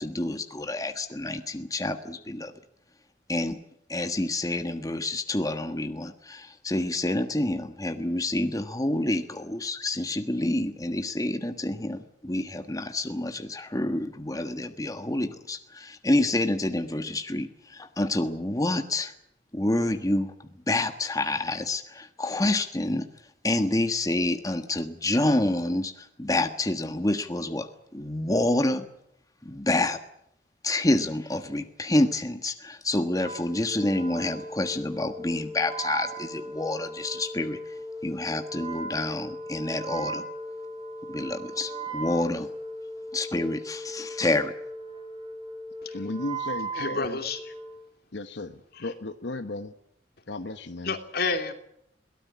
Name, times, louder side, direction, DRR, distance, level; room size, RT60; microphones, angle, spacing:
voice 1, 0.0-2.5 3.3-3.6 3.9-19.1 19.5-20.3 20.7-23.1 23.4-27.7 27.9-28.8 29.4-30.0 30.6-37.6 38.0-40.2 41.1-42.5 43.1-44.5, left 1 dB, 20° left, 7 dB, 1.4 m, -28 dB
Wind instrument woodwind instrument, 33.1-47.8, right 1 dB, 25° right, 3.3 m, -38 dB
voice 2, 45.9-47.2 48.1-49.7 50.3-51.0, left 2 dB, 80° left, 9 dB, 1.1 m, -35 dB
voice 3, 46.7-47.5 48.8-48.9 50.8-51.5, left 4 dB, 60° left, 7 dB, 2.9 m, -30 dB
22.5 x 18.0 x 9.7 m, 0.75 s
head